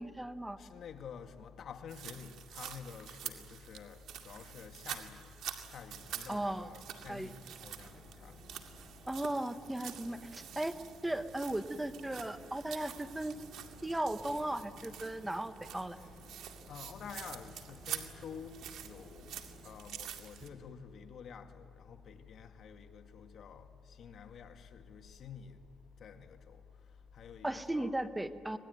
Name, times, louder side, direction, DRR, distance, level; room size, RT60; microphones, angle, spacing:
voice 1, 0.0-0.6 6.3-6.7 7.1-7.3 9.1-10.7 11.0-13.3 13.8-16.0 27.4-28.6, right 1 dB, 10° right, 1.3 m, -36 dB
voice 2, 0.6-5.3 5.7-8.4 16.0-16.1 16.7-19.4 19.6-25.6 26.0-26.6 27.1-27.9, left 6 dB, 55° left, 2.1 m, -49 dB
sound 1, 1.9-20.5, right 9 dB, 75° right, 2.2 m, -47 dB
sound 2, 5.9-19.8, right 2 dB, 45° right, 4.7 m, -57 dB
26.5 x 19.5 x 9.4 m
cardioid pair, 100°, 0 cm